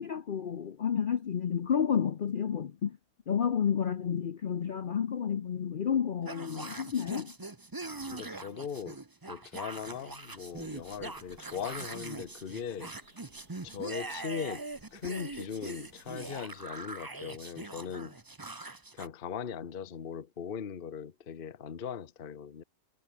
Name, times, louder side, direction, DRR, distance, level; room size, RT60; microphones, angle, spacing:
voice 1, 0.0-3.0 3.3-7.3, left 8 dB, 90° left, 0.4 m, -30 dB
sound 1, 6.3-19.1, right 2 dB, 15° right, 0.8 m, -42 dB
voice 2, 8.1-9.0 9.3-12.9 13.6-18.2 18.9-22.6, left 7 dB, 35° left, 1.1 m, -39 dB
sound 2, 9.7-16.9, right 2 dB, 60° right, 8.3 m, -62 dB
omnidirectional pair, 1.8 m